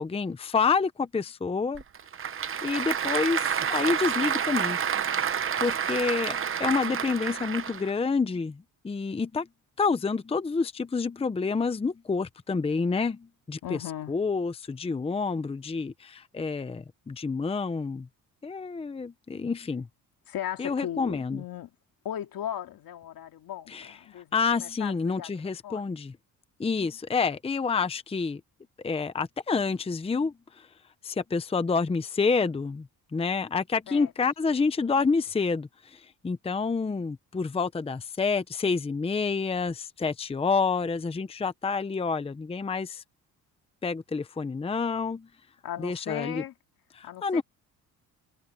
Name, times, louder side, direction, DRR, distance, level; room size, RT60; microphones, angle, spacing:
voice 1, 0.0-1.8 2.6-5.1 5.6-9.5 9.8-13.8 14.1-18.1 18.4-19.9 20.6-21.4 23.7-23.9 24.3-26.1 26.6-28.4 28.8-30.7 31.0-32.9 33.1-43.0 43.8-45.3 45.8-46.4 47.0-47.4, left 4 dB, 15° left, 0.7 m, -28 dB
Applause / Crowd, 1.7-7.9, right 8 dB, 35° right, 0.9 m, -29 dB
voice 2, 13.6-14.2 20.3-21.7 22.0-25.9 33.9-34.1 45.6-46.5 47.0-47.4, left 11 dB, 65° left, 2.3 m, -37 dB
cardioid pair, 130°, 37 cm